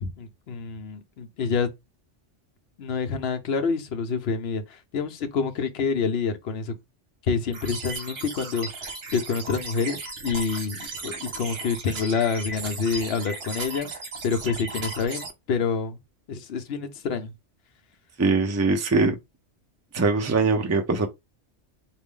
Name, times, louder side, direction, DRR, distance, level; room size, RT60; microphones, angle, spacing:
voice 1, 0.0-1.7 2.8-6.7 7.2-13.9 14.2-16.0 16.3-17.3, left 5 dB, 65° left, 1.0 m, -27 dB
sound 1, 7.5-15.3, right 3 dB, 60° right, 1.3 m, -36 dB
voice 2, 18.2-19.1 19.9-21.1, right 3 dB, 20° right, 0.5 m, -22 dB
4.1 x 2.6 x 3.6 m
omnidirectional pair, 1.2 m